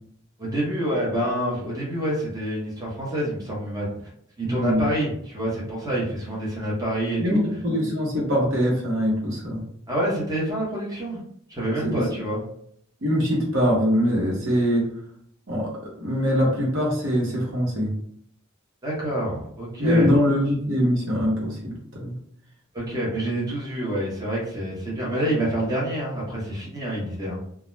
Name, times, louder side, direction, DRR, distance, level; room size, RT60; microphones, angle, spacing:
voice 1, 0.4-3.9 4.4-7.4 9.9-11.2 11.5-12.4 18.8-20.1 22.7-27.4, right 1 dB, 20° right, -5 dB, 0.8 m, -27 dB
voice 2, 4.4-4.9 7.2-9.6 11.8-12.0 13.0-14.9 15.5-15.7 16.0-17.9 19.8-22.1, equal, 75° right, -3 dB, 0.9 m, -23 dB
2.3 x 2.1 x 3.0 m, 0.65 s
head